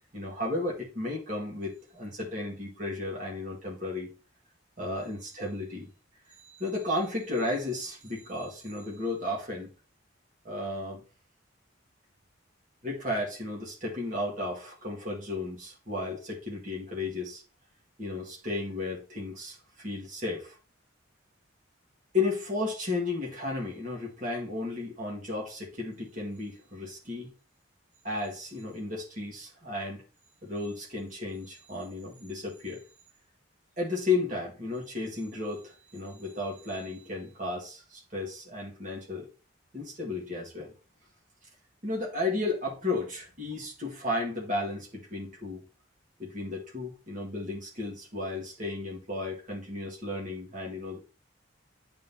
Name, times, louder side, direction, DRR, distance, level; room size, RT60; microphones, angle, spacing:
voice 1, 0.0-4.1 4.8-5.9 6.4-9.7 10.4-11.0 12.8-17.4 18.0-20.6 22.1-27.3 28.0-30.0 30.4-32.8 33.8-39.3 39.7-40.7 41.8-45.6 46.2-51.0, left 2 dB, 40° right, -3 dB, 1.8 m, -34 dB
10.0 x 3.7 x 2.8 m, 0.35 s
head